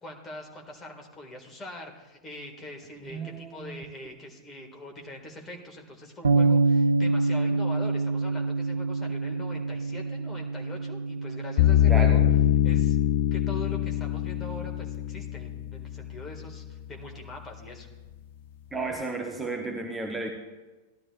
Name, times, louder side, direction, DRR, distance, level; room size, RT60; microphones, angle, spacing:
voice 1, 0.0-12.2 12.6-13.0 13.3-17.9, left 1 dB, 20° left, 2 dB, 1.9 m, -43 dB
voice 2, 3.0-3.8 11.9-12.3 18.7-20.3, right 3 dB, 10° right, 2 dB, 0.9 m, -33 dB
Bass guitar, 6.2-12.5, right 3 dB, 70° right, 0.5 m, -26 dB
sound 1, 11.6-16.7, left 12 dB, 50° left, 0.3 m, -24 dB
17.5 x 12.0 x 2.5 m, 1.2 s
figure-of-eight pair, 90°, 0 cm